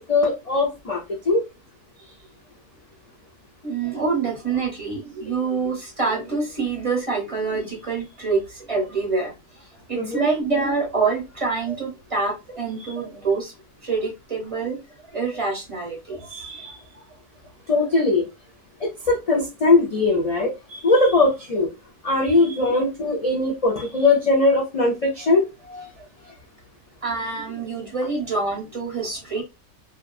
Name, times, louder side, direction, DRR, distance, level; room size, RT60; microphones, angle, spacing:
voice 1, 0.1-1.4 9.9-10.3 12.8-12.9 16.3-16.8 17.7-18.3 18.8-21.7 22.0-25.9, left 3 dB, 60° left, -2 dB, 0.3 m, -21 dB
voice 2, 3.6-13.5 13.8-14.8 15.1-17.0 26.0-26.1 27.0-29.4, right 4 dB, 25° right, -2 dB, 0.9 m, -26 dB
2.9 x 2.2 x 2.3 m, 0.25 s
omnidirectional pair, 1.5 m